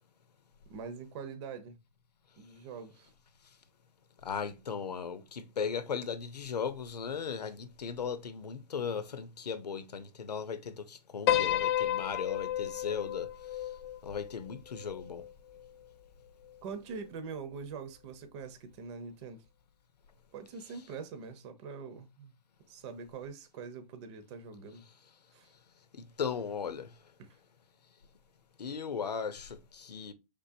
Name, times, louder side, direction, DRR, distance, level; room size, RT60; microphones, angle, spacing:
voice 1, 0.7-1.8 2.4-3.1 16.6-19.4 20.3-22.3 22.7-24.8 25.3-25.5 27.2-27.3, right 5 dB, 45° right, 0.9 m, -43 dB
voice 2, 4.2-13.3 14.0-15.2 20.6-20.8 25.9-26.9 28.6-30.1, left 6 dB, 90° left, 0.9 m, -37 dB
Piano, 11.3-15.7, left 12 dB, 40° left, 0.4 m, -32 dB
5.4 x 3.7 x 2.7 m
hypercardioid pair, 135°, 20 cm